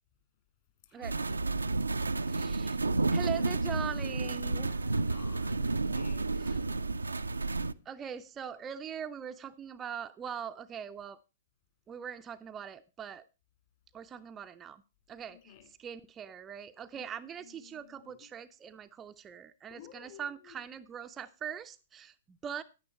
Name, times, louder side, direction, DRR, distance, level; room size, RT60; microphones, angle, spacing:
voice 1, 0.8-1.4 4.7-6.7 15.3-15.7 16.9-17.1 17.4-18.3 19.7-20.6, left 10 dB, 45° left, 2.8 m, -54 dB
sound 1, 1.0-7.7, right 3 dB, 80° right, 0.4 m, -31 dB
voice 2, 2.3-2.8 3.1-4.8 6.3-6.6 7.9-11.2 11.9-13.3 13.9-14.8 15.1-22.6, right 8 dB, 20° right, 0.5 m, -42 dB
9.9 x 9.6 x 4.2 m
figure-of-eight pair, 115°, 0 cm